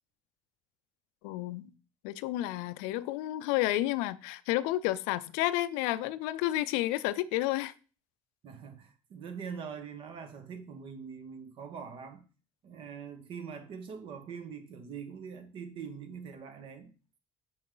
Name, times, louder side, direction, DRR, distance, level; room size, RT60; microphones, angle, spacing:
voice 1, 1.2-1.7 2.0-7.7, left 15 dB, 90° left, 0.4 m, -31 dB
voice 2, 8.4-12.2 12.6-16.9, right 6 dB, 55° right, 1.2 m, -43 dB
6.2 x 4.7 x 3.8 m
cardioid pair, 110°, 10 cm